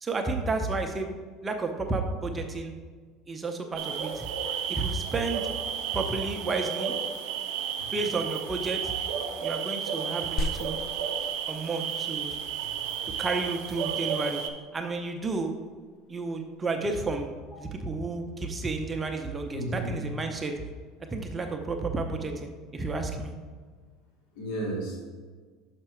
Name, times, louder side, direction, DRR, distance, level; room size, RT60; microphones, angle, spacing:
voice 1, 0.0-1.1 1.4-2.7 3.3-4.3 4.7-5.5 5.9-7.0 7.9-8.9 9.4-10.8 11.5-12.4 13.2-14.4 14.7-15.5 16.1-17.3 17.6-20.5 21.1-23.3, right 3 dB, 20° right, 4 dB, 0.6 m, -31 dB
sound 1, 3.8-14.5, right 8 dB, 65° right, 0.7 m, -32 dB
sound 2, 10.4-20.4, left 2 dB, 50° left, 0.5 m, -41 dB
voice 2, 19.5-20.0 24.4-25.0, right 1 dB, 70° left, -2 dB, 1.9 m, -33 dB
5.9 x 5.7 x 4.4 m, 1.5 s
supercardioid pair, 110°, 0 cm